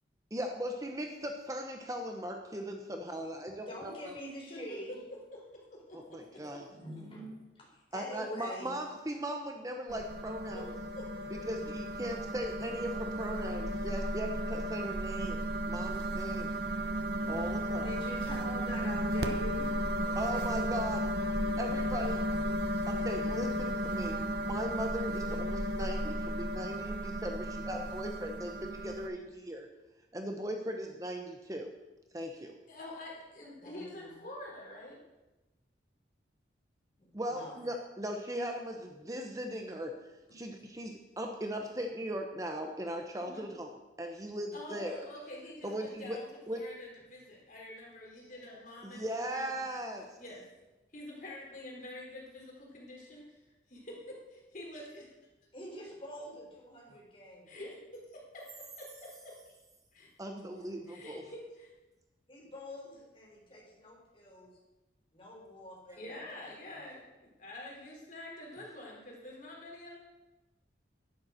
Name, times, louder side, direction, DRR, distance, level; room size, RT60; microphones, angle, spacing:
voice 1, 0.3-3.9 5.9-6.7 7.9-10.7 11.3-15.4 15.7-16.5 17.3-17.9 20.2-21.0 21.6-22.2 22.9-29.7 30.1-31.7 32.1-32.6 37.1-43.7 44.0-45.0 45.6-46.2 46.5-46.6 48.8-50.2 60.2-61.2, equal, 20° right, 4 dB, 0.9 m, -38 dB
voice 2, 3.7-5.0 6.7-8.7 17.8-19.7 20.0-20.7 23.9-24.0 33.6-34.2 37.0-37.6 55.5-57.4 62.3-62.9 63.3-64.6 65.1-66.6, equal, 30° left, -2 dB, 4.1 m, -45 dB
voice 3, 5.7-6.4 10.6-10.7 11.0-11.3 17.2-17.4 21.4-21.5 32.7-35.1 43.1-43.4 44.5-46.3 46.5-49.6 50.2-50.5 50.9-53.2 53.7-55.1 57.5-58.4 58.8-59.3 59.9-60.1 60.9-61.7 66.0-70.0, left 1 dB, 45° left, -3 dB, 4.1 m, -47 dB
sound 1, 9.9-29.1, equal, 60° right, 0.9 m, -34 dB
11.0 x 10.5 x 6.5 m, 1.1 s
head